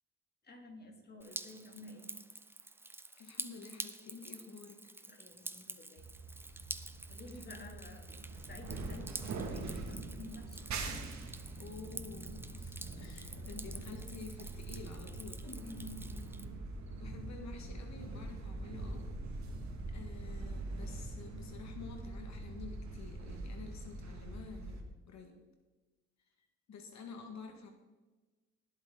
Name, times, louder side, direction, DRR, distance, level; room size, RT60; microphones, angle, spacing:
voice 1, 0.4-2.1 5.1-6.1 7.1-8.1 8.3-10.6 15.5-16.7, left 2 dB, 35° left, 2 dB, 3.0 m, -51 dB
Drip, 1.2-16.5, right 2 dB, 5° right, 0.7 m, -48 dB
voice 2, 3.2-4.8 7.3-7.7 11.6-15.6 16.9-19.1 19.9-25.4 26.4-27.7, left 4 dB, 65° left, 4 dB, 1.9 m, -50 dB
sound 1, 6.0-24.8, right 2 dB, 65° right, 2.3 m, -43 dB
19.5 x 8.4 x 4.0 m, 1.2 s
cardioid pair, 90°, 30 cm